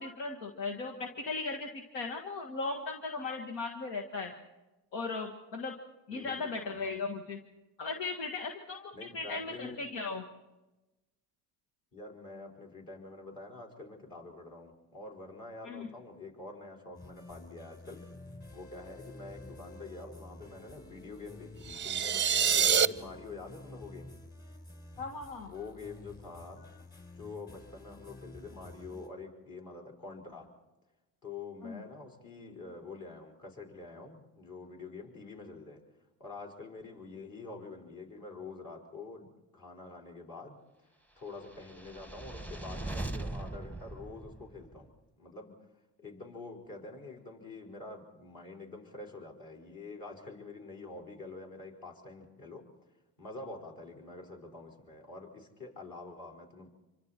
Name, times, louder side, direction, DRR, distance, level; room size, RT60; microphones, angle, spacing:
voice 1, 0.0-4.3 4.9-5.8 6.1-7.4 7.8-10.2 15.6-15.9 25.0-25.5 31.6-31.8, left 3 dB, 80° left, 1 dB, 1.8 m, -37 dB
voice 2, 6.1-6.9 8.9-9.8 11.9-18.1 18.5-24.1 25.4-26.7 27.1-30.5 31.2-35.8 36.2-39.3 39.5-40.6 41.2-44.9 45.2-45.6 46.0-52.7 53.2-56.7, left 3 dB, 50° left, 0 dB, 5.1 m, -46 dB
sound 1, 16.9-29.1, left 2 dB, 20° left, 3.9 m, -50 dB
sound 2, 21.7-22.9, right 7 dB, 25° right, 0.6 m, -26 dB
sound 3, 41.4-44.9, right 2 dB, 5° left, 1.0 m, -40 dB
26.5 x 24.5 x 4.4 m, 1.1 s
supercardioid pair, 75°, 43 cm